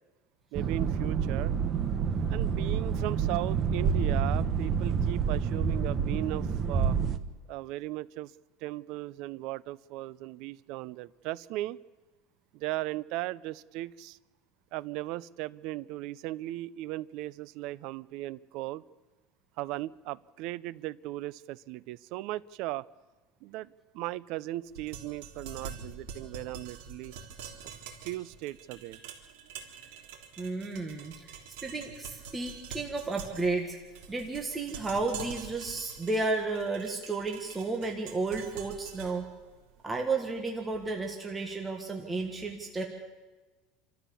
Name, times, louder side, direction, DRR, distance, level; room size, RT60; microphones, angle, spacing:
sound 1, 0.5-7.2, right 6 dB, 25° right, 0.9 m, -28 dB
voice 1, 0.5-1.5 2.3-7.0 7.5-8.3 8.6-11.8 12.5-14.2 14.7-18.8 19.6-22.9 23.4-23.7 23.9-27.1 28.0-29.0, right 16 dB, 50° right, 19 dB, 0.5 m, -37 dB
sound 2, 24.7-40.7, right 6 dB, 70° right, 3.5 m, -46 dB
voice 2, 30.4-31.1 31.6-33.8 34.1-39.2 39.8-42.8, right 3 dB, 10° right, 1 dB, 1.6 m, -32 dB
28.5 x 13.5 x 7.1 m, 1.2 s
cardioid pair, 175°, 0 cm